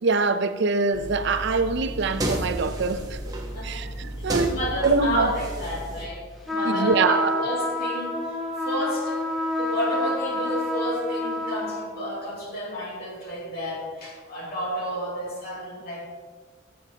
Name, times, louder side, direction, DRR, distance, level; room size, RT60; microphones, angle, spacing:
voice 1, 0.0-3.2 3.6-4.5 4.8-5.3 6.6-7.4, right 4 dB, 60° right, 0.5 m, -24 dB
sound 1, 0.9-6.1, right 1 dB, 20° right, 1.0 m, -32 dB
voice 2, 3.5-9.2 9.6-16.0, equal, 50° left, 2.5 m, -31 dB
sound 2, 6.5-11.9, left 1 dB, ahead, 1.5 m, -28 dB
15.5 x 6.5 x 2.9 m
head